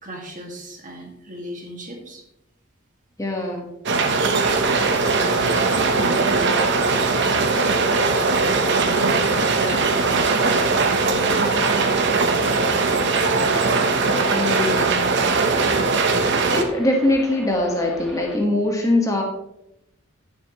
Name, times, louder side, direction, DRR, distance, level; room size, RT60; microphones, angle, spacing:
voice 1, 0.0-2.2 4.2-6.6 6.9-8.1 8.6-12.7, right 1 dB, 40° right, 0 dB, 2.0 m, -36 dB
voice 2, 3.2-3.7 14.3-15.2 16.5-19.2, left 1 dB, 15° left, 0 dB, 1.5 m, -22 dB
sound 1, 3.9-16.6, right 4 dB, 60° right, 1.0 m, -20 dB
sound 2, 4.4-18.4, equal, ahead, 1.4 m, -38 dB
10.5 x 9.6 x 3.1 m, 0.82 s
head